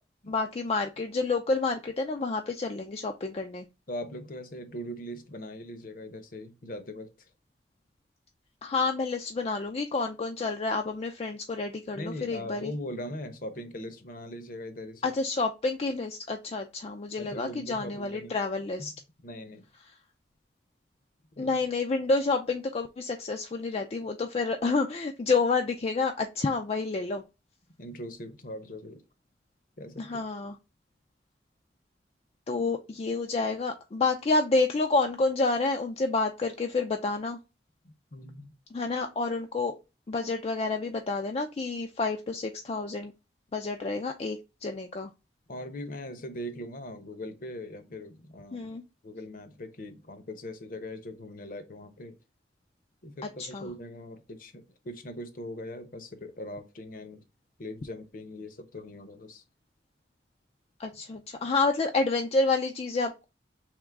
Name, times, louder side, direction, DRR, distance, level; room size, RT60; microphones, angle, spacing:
voice 1, 0.3-3.7 8.6-12.7 15.0-18.9 21.4-27.2 30.0-30.6 32.5-37.4 38.7-39.7 40.1-43.1 43.5-45.1 48.5-48.8 53.4-53.7 60.8-63.2, left 3 dB, 35° left, 0.4 m, -29 dB
voice 2, 3.9-7.3 11.9-15.1 17.2-18.3 18.8-19.7 21.4-21.6 27.8-29.0 29.8-30.2 37.8-38.5 45.5-48.7 49.0-52.2 53.0-57.2 57.6-59.4, left 1 dB, 50° left, 0.8 m, -41 dB
3.6 x 3.0 x 4.5 m
head